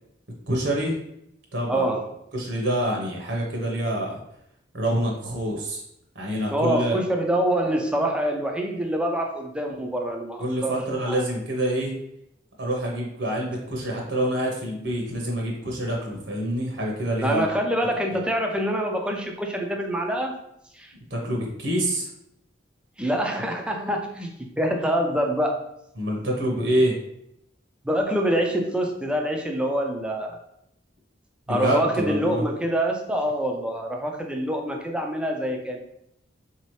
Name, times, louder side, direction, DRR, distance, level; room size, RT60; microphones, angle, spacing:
voice 1, 0.5-1.0 1.5-1.9 2.3-4.2 4.7-5.8 6.1-7.0 10.4-11.9 12.6-17.5 21.1-22.0 26.0-27.0 31.5-32.4, right 1 dB, 70° right, -1 dB, 0.9 m, -26 dB
voice 2, 1.7-2.1 6.5-10.7 11.0-11.3 17.2-20.3 20.7-20.9 23.0-24.3 24.6-25.6 27.8-30.4 31.5-35.8, right 1 dB, 5° right, 1 dB, 0.4 m, -25 dB
4.1 x 2.8 x 3.1 m, 0.77 s
head